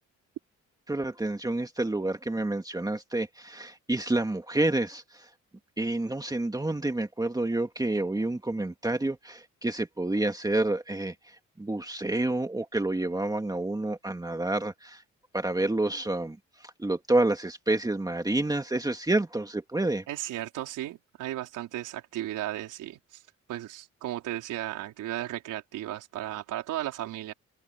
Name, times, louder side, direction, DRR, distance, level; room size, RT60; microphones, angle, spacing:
voice 1, 0.9-5.3 5.8-15.0 15.3-20.0, right 2 dB, 10° right, 2.1 m, -29 dB
voice 2, 20.1-23.2 23.5-27.3, right 14 dB, 90° right, 4.6 m, -35 dB
cardioid pair, 90°, 30 cm